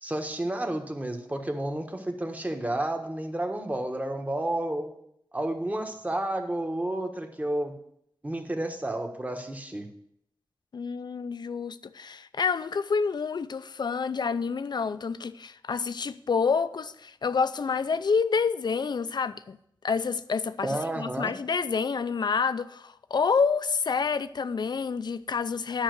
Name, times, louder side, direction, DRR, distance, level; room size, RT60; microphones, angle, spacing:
voice 1, 0.0-4.9 5.3-7.7 8.2-9.9 20.6-21.3, right 1 dB, 20° right, 1.3 m, -31 dB
voice 2, 10.7-19.6 19.8-25.8, left 5 dB, 60° left, 0.5 m, -28 dB
10.0 x 5.6 x 6.5 m
wide cardioid pair, 80°, 8 cm